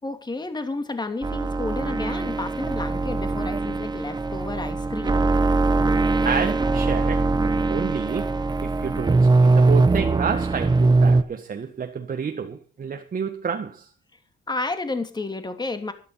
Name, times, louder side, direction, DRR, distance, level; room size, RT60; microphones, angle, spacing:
voice 1, 0.0-5.2 14.5-15.9, left 3 dB, 20° left, 2.8 m, -31 dB
sound 1, 1.2-11.2, right 3 dB, 20° right, 1.4 m, -21 dB
voice 2, 6.2-13.9, right 6 dB, 45° right, 1.6 m, -30 dB
13.0 x 12.0 x 5.7 m
cardioid pair, 90°, 20 cm